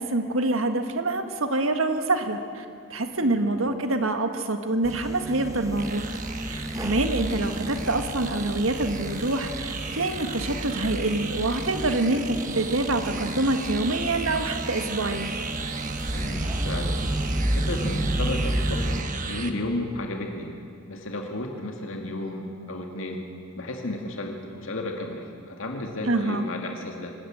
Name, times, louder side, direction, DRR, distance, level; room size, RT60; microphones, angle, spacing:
voice 1, 0.0-2.6 2.9-6.1 6.5-15.3 26.1-26.5, right 2 dB, 80° right, 7 dB, 1.7 m, -26 dB
sound 1, 4.8-19.0, right 1 dB, 15° right, 1.1 m, -31 dB
sound 2, 5.8-19.5, right 4 dB, 40° right, 1.3 m, -36 dB
voice 2, 16.1-17.0 17.6-20.6 20.9-23.2 23.5-27.1, left 1 dB, 75° left, 2 dB, 2.1 m, -33 dB
24.5 x 13.5 x 8.9 m, 2.4 s
head